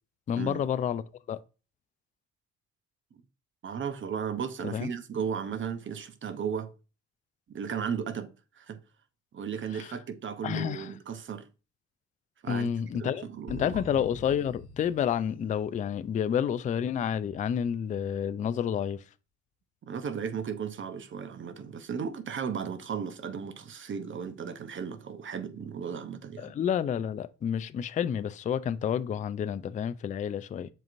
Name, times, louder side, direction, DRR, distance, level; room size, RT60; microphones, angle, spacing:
voice 1, 0.3-1.0 1.3-1.4 4.7-4.9 9.7-9.9 10.4-10.9 12.5-13.2 13.5-19.0 26.4-30.7, left 8 dB, 25° left, 0.3 m, -29 dB
voice 2, 3.6-6.7 7.5-8.3 8.5-8.8 9.3-11.5 12.4-12.7 13.0-13.9 19.8-26.6, right 7 dB, 35° right, 0.7 m, -35 dB
sound 1, 13.5-16.2, left 5 dB, 50° left, 0.8 m, -45 dB
7.3 x 2.9 x 2.5 m
hypercardioid pair, 50°, 34 cm